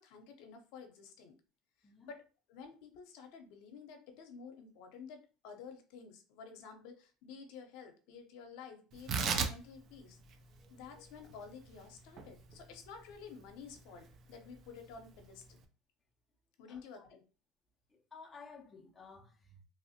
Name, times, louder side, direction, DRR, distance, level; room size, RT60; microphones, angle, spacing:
voice 1, 0.0-1.4 1.8-2.2 2.5-10.2 10.7-15.6 16.6-17.2, left 5 dB, 70° left, 0.6 m, -51 dB
voice 2, 1.8-2.2 10.6-11.0 16.7-16.9 17.9-19.6, left 4 dB, 15° left, 0.4 m, -55 dB
Tearing, 8.9-15.6, right 6 dB, 45° right, 0.4 m, -40 dB
2.9 x 2.0 x 2.7 m
supercardioid pair, 130°, 0 cm